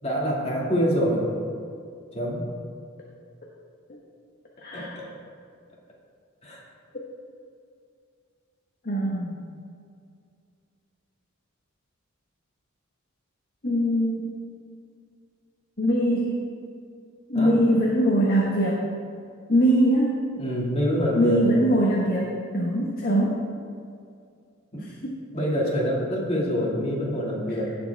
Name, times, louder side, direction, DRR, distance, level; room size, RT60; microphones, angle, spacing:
voice 1, 0.0-1.3 2.1-2.5 4.7-5.1 6.4-6.6 17.3-17.6 20.4-21.4 24.7-24.9 25.3-27.8, equal, 30° left, -3 dB, 2.3 m, -26 dB
voice 2, 4.6-5.0 8.8-9.4 13.6-14.3 15.8-16.4 17.3-18.8 19.5-20.1 21.2-23.4 25.0-25.2, equal, 50° left, -3 dB, 1.4 m, -22 dB
17.0 x 7.1 x 3.5 m, 2.3 s
head